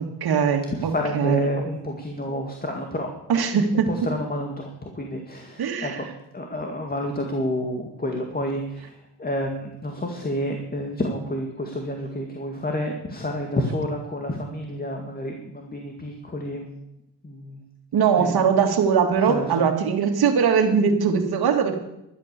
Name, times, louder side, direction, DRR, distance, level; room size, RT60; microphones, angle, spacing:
voice 1, 0.0-1.5 3.3-3.9 5.6-6.0 17.9-21.8, right 6 dB, 65° right, 5 dB, 2.4 m, -21 dB
voice 2, 0.7-3.1 3.5-6.1 6.3-16.7 17.2-17.6 18.1-18.4 19.2-19.7, left 1 dB, 20° left, 2 dB, 2.2 m, -29 dB
12.0 x 11.5 x 6.9 m, 0.86 s
cardioid pair, 90°, 40 cm